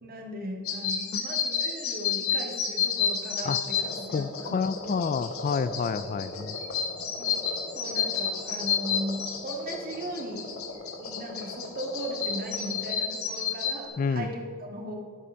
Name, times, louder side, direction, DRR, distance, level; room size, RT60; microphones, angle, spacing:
voice 1, 0.0-4.6 4.9-5.0 7.2-10.5 11.0-15.0, right 1 dB, 45° right, 1 dB, 1.8 m, -37 dB
sound 1, 0.7-13.8, left 7 dB, 90° left, 1.3 m, -31 dB
sound 2, 3.7-12.9, left 1 dB, 60° left, 2.0 m, -40 dB
voice 2, 4.1-6.6 14.0-14.3, left 5 dB, 40° left, 14 dB, 0.3 m, -29 dB
11.0 x 8.6 x 5.6 m, 2.3 s
head